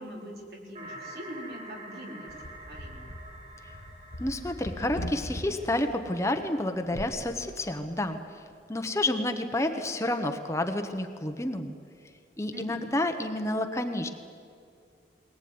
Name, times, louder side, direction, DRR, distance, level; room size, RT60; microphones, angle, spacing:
voice 1, 0.0-3.1 12.5-12.8, equal, 65° right, -1 dB, 4.9 m, -43 dB
sound 1, 0.7-6.4, right 1 dB, 40° right, 6.8 m, -47 dB
sound 2, 2.3-5.5 6.8-7.2, left 1 dB, 85° left, 1.7 m, -40 dB
voice 2, 4.2-8.2 8.7-11.7 12.4-14.1, left 1 dB, 15° left, 6 dB, 1.1 m, -29 dB
22.0 x 19.0 x 9.6 m, 2.4 s
head